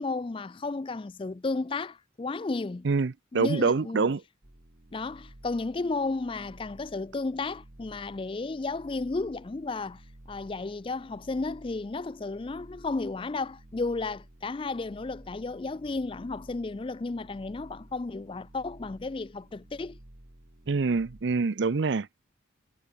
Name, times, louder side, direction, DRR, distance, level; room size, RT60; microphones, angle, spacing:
voice 1, 0.0-2.9 3.3-4.1 4.9-10.0 10.3-20.0, left 3 dB, 25° left, 0.4 m, -33 dB
voice 2, 2.8-4.2 20.7-22.1, right 4 dB, 65° right, 0.5 m, -25 dB
sound 1, 4.4-21.2, right 1 dB, 45° right, 1.9 m, -53 dB
head